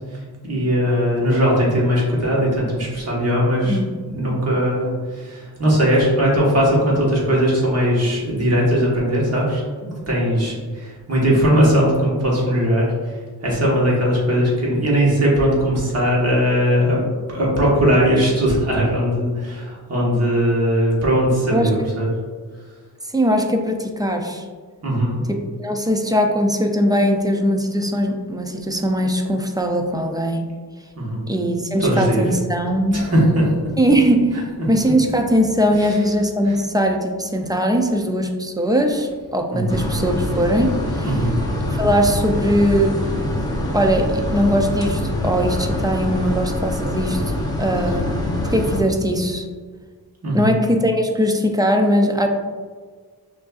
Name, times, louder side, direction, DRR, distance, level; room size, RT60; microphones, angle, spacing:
voice 1, 0.0-3.8 4.1-13.1 13.4-17.0 17.3-22.1 24.8-25.2 30.9-31.2 31.8-32.3 32.9-33.4 35.7-36.0 39.5-39.8 41.0-41.4 50.2-50.6, equal, 40° right, -5 dB, 1.4 m, -19 dB
voice 2, 23.1-24.4 25.3-30.4 31.3-33.1 33.8-34.4 34.7-41.2 41.7-43.0 43.7-47.2 47.6-49.5 50.3-52.3, equal, 10° right, 3 dB, 0.3 m, -20 dB
sound 1, 39.7-48.8, left 1 dB, 10° left, 0.7 m, -24 dB
6.1 x 2.6 x 2.4 m, 1.5 s
wide cardioid pair, 110°, 38 cm